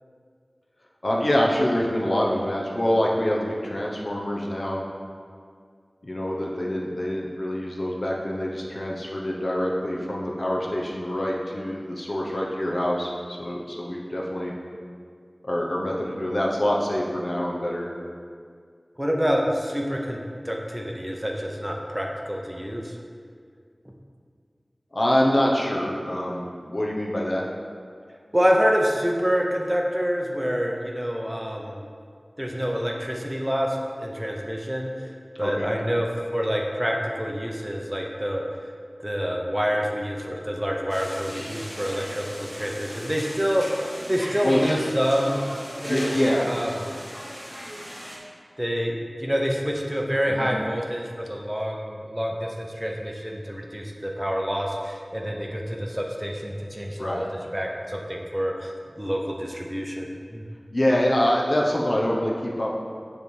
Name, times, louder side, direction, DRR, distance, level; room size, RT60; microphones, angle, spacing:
voice 1, 1.0-4.8 6.0-14.5 15.4-17.9 24.9-27.4 35.4-35.7 44.4-44.6 45.9-46.5 50.3-50.5 57.0-57.2 60.7-62.7, left 1 dB, 60° left, -2 dB, 0.9 m, -25 dB
voice 2, 19.0-20.2 20.4-23.0 28.3-31.8 32.4-34.9 35.4-38.4 39.0-42.3 42.5-45.4 45.8-46.7 48.6-60.1 60.3-60.4, equal, 10° right, 0 dB, 0.7 m, -27 dB
sound 1, 40.9-48.2, equal, 5° left, 1.3 m, -38 dB
6.7 x 3.4 x 5.4 m, 2.1 s
wide cardioid pair, 55°, 0 cm